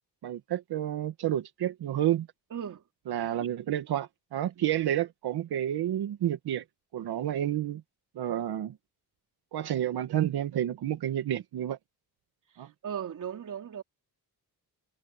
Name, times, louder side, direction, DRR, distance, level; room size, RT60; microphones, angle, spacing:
voice 1, 0.2-2.3 3.1-6.6 6.9-7.8 8.2-8.7 9.5-11.8 12.6-12.7, right 11 dB, 80° right, 1.8 m, -30 dB
voice 2, 2.5-2.8 3.4-3.5 4.5-4.8 12.8-13.8, right 8 dB, 55° right, 3.3 m, -37 dB
cardioid pair, 135°, 38 cm